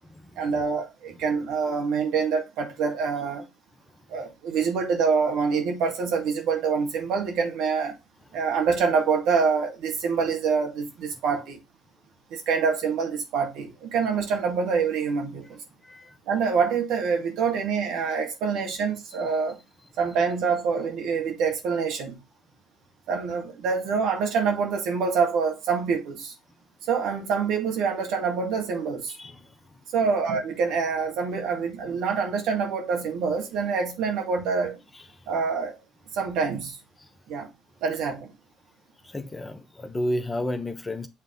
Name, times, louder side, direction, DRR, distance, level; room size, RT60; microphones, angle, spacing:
voice 1, 0.4-3.5 4.1-8.0 8.3-11.6 12.3-15.6 16.3-19.6 20.0-22.2 23.1-26.3 26.8-29.2 29.9-34.8 35.3-35.7 36.1-36.8 37.3-37.5 37.8-38.3, right 5 dB, 70° right, 1.7 m, -26 dB
voice 2, 15.8-16.2 29.1-29.5 37.0-37.1 39.0-41.1, left 1 dB, 20° left, 0.9 m, -32 dB
7.5 x 3.5 x 3.7 m
hypercardioid pair, 60°, 0 cm